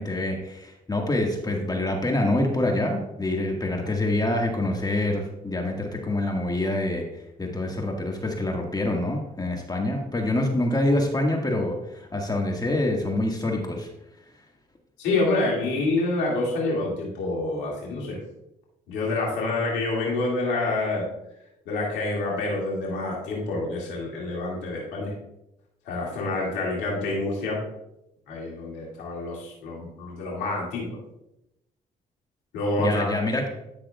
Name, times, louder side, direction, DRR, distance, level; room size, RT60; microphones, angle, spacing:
voice 1, 0.0-7.0 7.4-13.9 32.8-33.4, left 1 dB, 20° left, 1 dB, 1.7 m, -26 dB
voice 2, 15.0-18.2 18.9-21.1 21.7-25.1 25.9-27.6 28.3-31.0 32.5-33.1, left 2 dB, 85° left, -3 dB, 2.2 m, -27 dB
12.0 x 6.0 x 2.3 m, 0.86 s
supercardioid pair, 55°, 18 cm